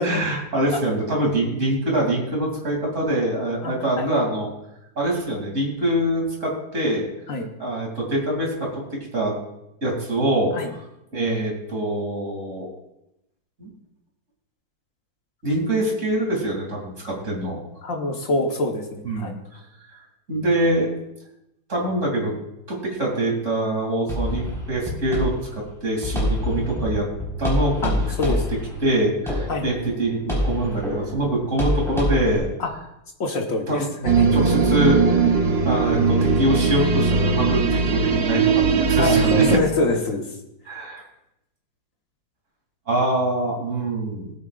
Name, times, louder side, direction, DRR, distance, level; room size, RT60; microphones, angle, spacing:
voice 1, 0.0-4.5 4.9-7.1 7.6-8.8 9.1-9.3 9.8-10.6 11.1-12.7 13.6-13.7 15.4-17.6 19.0-19.6 20.3-20.9 21.7-22.3 22.7-27.1 27.4-28.1 28.8-32.5 33.7-33.9 34.3-35.2 35.6-39.5 40.7-41.0 42.9-44.3, right 1 dB, 35° right, -2 dB, 3.1 m, -24 dB
voice 2, 3.6-4.1 7.3-7.5 10.5-10.7 17.8-19.3 27.8-27.9 28.2-28.4 29.5-29.7 32.6-32.7 33.2-34.4 39.0-40.2, left 2 dB, 45° left, 2 dB, 1.3 m, -25 dB
sound 1, 24.1-32.4, left 1 dB, ahead, 4.2 m, -27 dB
sound 2, 34.0-39.6, right 5 dB, 75° right, 0.5 m, -19 dB
19.5 x 8.7 x 2.4 m, 0.87 s
omnidirectional pair, 2.4 m